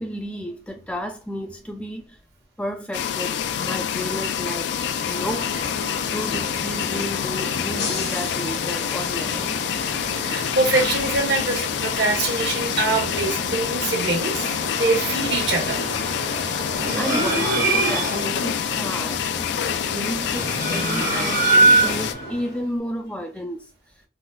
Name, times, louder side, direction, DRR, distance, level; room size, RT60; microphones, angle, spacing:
voice 1, 0.0-2.2 2.6-4.7 5.1-5.5 6.1-9.5 17.0-23.7, equal, 5° left, 0.4 m, -32 dB
sound 1, 2.9-22.1, left 8 dB, 80° left, 0.3 m, -27 dB
sound 2, 4.7-22.7, left 1 dB, 60° left, 0.9 m, -34 dB
voice 2, 10.1-14.4 14.8-15.8, right 3 dB, 75° right, 1.2 m, -24 dB
sound 3, 16.7-18.3 20.2-22.2, right 3 dB, 50° right, 0.9 m, -21 dB
4.0 x 2.3 x 2.2 m
head